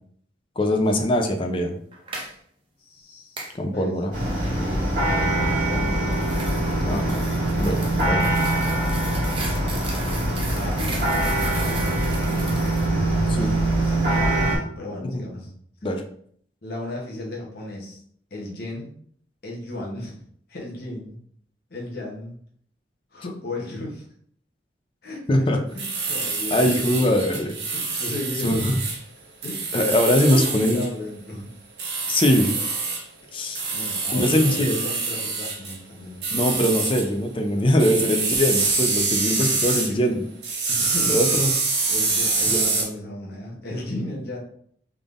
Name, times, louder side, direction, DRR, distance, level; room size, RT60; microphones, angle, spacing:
voice 1, 0.6-1.8 3.5-4.1 6.9-7.3 7.6-7.8 8.1-8.4 9.5-9.6 12.9-13.0 13.3-13.5 15.0-15.2 15.8-16.0 25.3-25.6 26.5-27.5 28.4-28.8 29.7-30.8 32.1-32.5 33.3-33.6 34.1-34.8 36.3-40.2 41.0-41.5 42.5-42.6, left 1 dB, 30° left, 4 dB, 0.4 m, -22 dB
sound 1, 1.9-2.3 3.4-3.6 5.7-12.9, right 2 dB, 30° right, 0.7 m, -36 dB
voice 2, 2.8-4.0 4.6-6.0 9.8-15.5 16.6-18.0 18.3-18.9 19.4-20.2 20.5-21.2 21.7-22.4 23.1-24.1 25.0-28.7 29.4-29.7 30.2-31.5 33.7-36.3 37.5-37.7 39.6-40.0 40.7-41.1 41.9-44.4, left 1 dB, 60° left, -2 dB, 0.9 m, -35 dB
sound 2, 4.1-14.6, right 1 dB, 45° right, 1.5 m, -23 dB
sound 3, 25.8-29.0 29.4-30.9 31.8-33.0 33.5-35.7 36.2-37.1 37.8-39.9 40.4-42.8, right 3 dB, 70° right, 0.9 m, -25 dB
3.6 x 3.5 x 2.5 m, 0.62 s
head